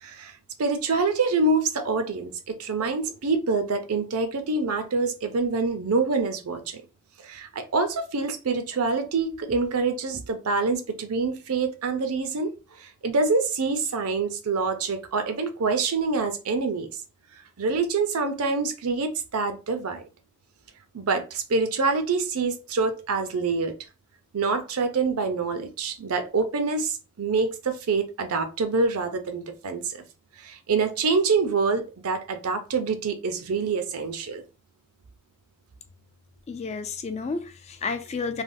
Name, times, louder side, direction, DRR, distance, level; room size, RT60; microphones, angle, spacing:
voice 1, 0.0-0.3 0.6-6.8 7.2-12.5 12.8-16.9 17.6-20.0 20.9-23.7 24.3-30.0 30.4-34.4, right 4 dB, 70° right, 0.6 m, -26 dB
voice 2, 36.5-38.4, left 4 dB, 30° left, 0.3 m, -31 dB
3.3 x 2.2 x 2.6 m
head